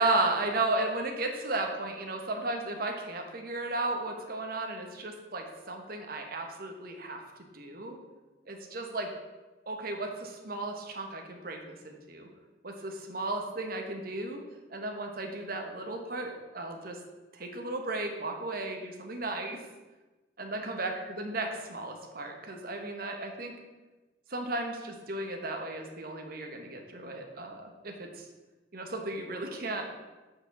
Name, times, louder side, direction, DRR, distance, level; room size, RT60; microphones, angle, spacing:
voice 1, 0.0-7.2 7.5-8.0 8.5-9.1 9.7-11.6 11.8-12.3 12.6-14.4 14.7-17.0 17.3-19.6 20.4-23.5 24.3-28.2 28.7-30.1, right 2 dB, 55° right, 3 dB, 1.3 m, -34 dB
7.0 x 5.3 x 6.8 m, 1.2 s
head